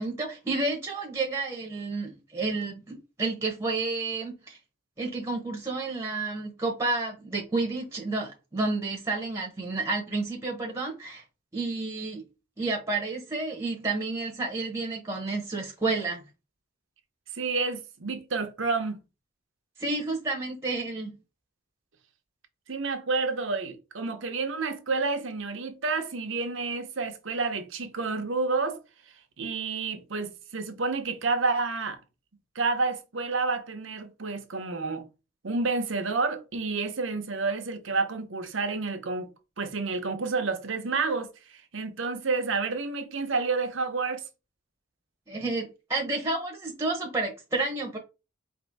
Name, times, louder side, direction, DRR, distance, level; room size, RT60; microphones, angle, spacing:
voice 1, 0.0-4.6 5.0-11.2 11.5-12.2 12.6-16.2 19.8-21.1 45.3-48.0, right 3 dB, 15° right, 1.0 m, -30 dB
voice 2, 17.3-19.0 22.7-28.8 29.4-32.0 32.5-35.0 35.4-39.3 39.6-44.2, right 4 dB, 75° right, 0.8 m, -29 dB
4.4 x 2.7 x 4.0 m
head